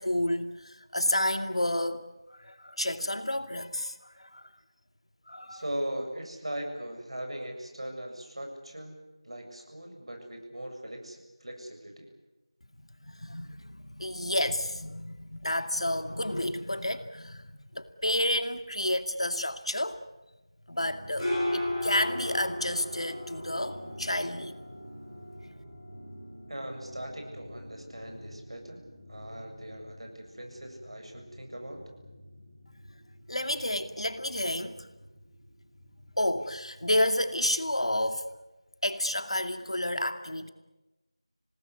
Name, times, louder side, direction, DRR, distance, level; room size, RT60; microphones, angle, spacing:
voice 1, 0.0-4.4 5.3-5.6 13.0-20.0 20.7-24.5 33.3-34.9 36.2-38.3 38.8-40.5, left 1 dB, 75° left, 2.4 m, -30 dB
voice 2, 5.5-9.0 9.2-12.1 26.5-28.8 29.1-31.8, right 1 dB, 65° right, 7.4 m, -39 dB
sound 1, 20.7-38.2, left 1 dB, 5° right, 7.6 m, -40 dB
26.0 x 19.0 x 9.7 m
figure-of-eight pair, 175°, 3 cm